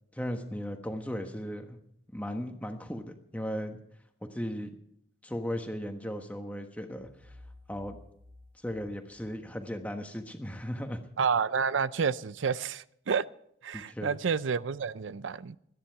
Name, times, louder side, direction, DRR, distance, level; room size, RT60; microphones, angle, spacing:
voice 1, 0.1-1.8 2.1-3.1 3.3-3.8 4.3-4.7 5.2-7.3 7.7-8.0 8.6-11.0 13.7-14.1, equal, 10° left, 1.3 m, -36 dB
sound 1, 7.0-9.8, left 2 dB, 45° right, 2.5 m, -54 dB
voice 2, 11.2-13.2 13.6-15.6, right 6 dB, 90° right, 0.5 m, -29 dB
27.0 x 10.0 x 4.7 m
head